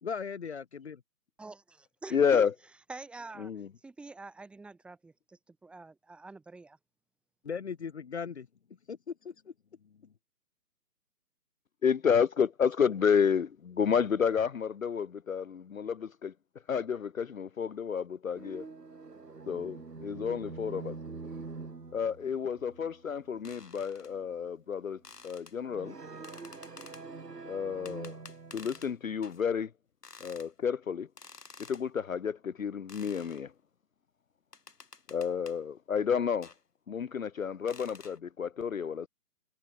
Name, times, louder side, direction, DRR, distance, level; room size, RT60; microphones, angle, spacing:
voice 1, 0.0-1.0 7.5-8.4 8.9-9.3, left 6 dB, 45° left, 1.8 m, -38 dB
voice 2, 1.4-2.5 2.9-3.5 3.8-6.8, right 3 dB, ahead, 4.0 m, -46 dB
voice 3, 2.1-2.5 3.4-3.7 11.8-16.3 16.7-18.6 19.5-21.0 21.9-26.0 27.5-28.2 28.5-29.7 30.2-31.1 31.7-33.5 35.1-36.5 36.9-39.1, left 7 dB, 60° left, 1.0 m, -30 dB
sound 1, 18.3-23.7 24.1-24.4 25.6-29.0, right 4 dB, 85° right, 6.2 m, -45 dB
sound 2, 23.5-24.1 25.0-25.6 26.2-27.1 27.9-28.9 29.2-29.4 30.0-30.5 31.2-31.9 32.9-33.4 34.5-35.6 36.4-36.6 37.7-38.2, left 4 dB, 85° left, 6.7 m, -51 dB
hypercardioid pair, 165°, 47 cm